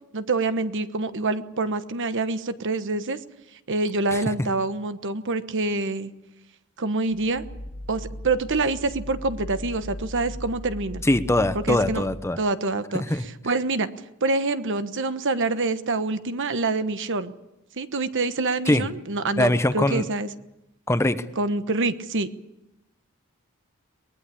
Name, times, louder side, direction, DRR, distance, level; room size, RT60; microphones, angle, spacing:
voice 1, 0.1-3.2 3.7-6.1 6.8-7.4 7.9-11.0 11.5-12.1 12.4-13.9 14.2-17.3 17.8-20.3 21.4-22.3, right 3 dB, 60° right, 11 dB, 1.2 m, -26 dB
sound 1, 7.1-12.5, left 1 dB, 75° left, 3.0 m, -38 dB
voice 2, 11.1-12.4 13.1-13.2 18.7-18.9 19.4-20.0 20.9-21.2, left 1 dB, 10° left, 11 dB, 0.9 m, -21 dB
23.0 x 19.5 x 8.5 m, 0.91 s
head